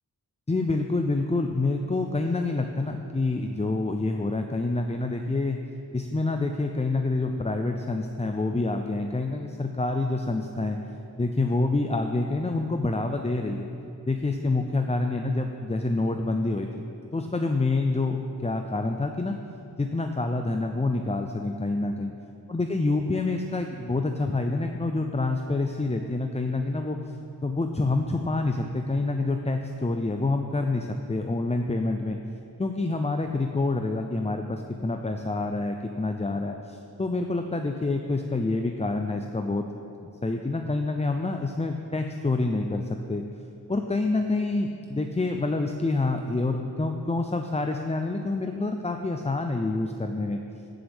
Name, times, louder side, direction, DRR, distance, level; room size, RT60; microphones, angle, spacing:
voice 1, 0.5-5.6 5.9-10.8 11.2-13.7 14.1-16.8 17.1-19.4 19.8-22.1 22.5-27.0 27.4-32.2 32.6-39.7 40.2-43.2 43.7-50.4, left 2 dB, 15° left, 5 dB, 0.4 m, -27 dB
16.0 x 7.4 x 3.5 m, 2.7 s
wide cardioid pair, 60°, 40 cm